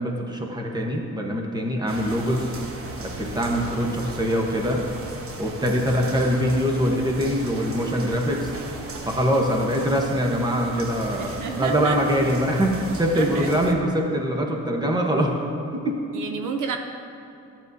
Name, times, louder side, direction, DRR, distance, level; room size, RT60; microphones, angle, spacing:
voice 1, 0.0-2.5 3.0-4.8 5.4-8.5 9.1-15.4 15.7-16.0, equal, 15° right, 1 dB, 1.1 m, -23 dB
sound 1, 1.9-13.7, right 2 dB, 45° right, 1.0 m, -37 dB
voice 2, 11.2-12.0 13.1-13.5 16.1-16.8, right 6 dB, 70° right, 5 dB, 0.7 m, -30 dB
12.5 x 9.0 x 2.7 m, 2.9 s
cardioid pair, 120°, 32 cm